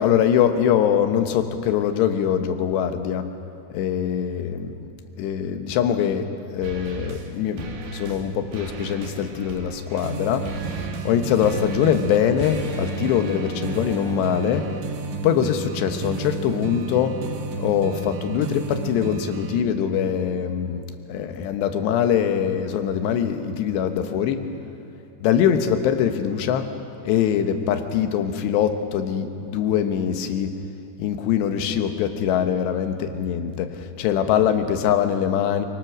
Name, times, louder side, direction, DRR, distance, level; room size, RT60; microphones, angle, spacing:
voice 1, 0.0-3.3 3.7-4.9 5.2-14.7 15.2-17.2 17.6-24.4 25.2-26.7 27.0-30.5 31.0-35.7, left 9 dB, 75° left, 7 dB, 3.1 m, -23 dB
sound 1, 6.6-7.3 7.6-8.3 8.5-14.8, right 4 dB, 60° right, 2.8 m, -36 dB
sound 2, 10.0-19.6, right 5 dB, 85° right, 3.4 m, -32 dB
23.5 x 23.0 x 6.1 m, 2.5 s
omnidirectional pair, 5.1 m